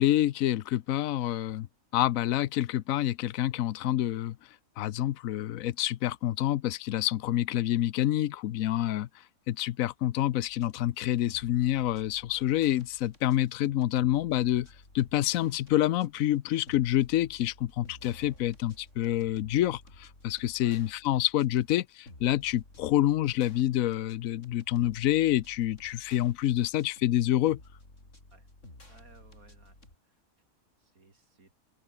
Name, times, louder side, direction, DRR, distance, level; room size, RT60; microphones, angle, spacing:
voice 1, 0.0-1.7 1.9-4.4 4.8-9.1 9.5-14.7 14.9-27.6, left 13 dB, 75° left, 1.1 m, -27 dB
sound 1, 10.4-30.0, left 1 dB, 60° left, 7.3 m, -54 dB
voice 2, 28.9-29.8 30.0-30.2 30.8-31.5, right 3 dB, 85° right, 4.1 m, -58 dB
open air
omnidirectional pair, 1.5 m